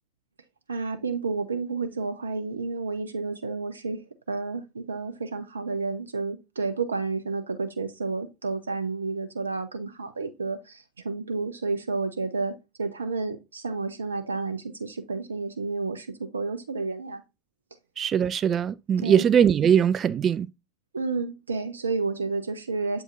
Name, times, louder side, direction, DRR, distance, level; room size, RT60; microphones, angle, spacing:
voice 1, 0.7-4.0 4.3-17.2 19.0-19.2 20.9-23.0, right 4 dB, 85° right, 0.6 m, -31 dB
voice 2, 18.0-20.5, right 8 dB, 35° right, 0.3 m, -21 dB
7.8 x 4.9 x 2.5 m
hypercardioid pair, 80°, 0 cm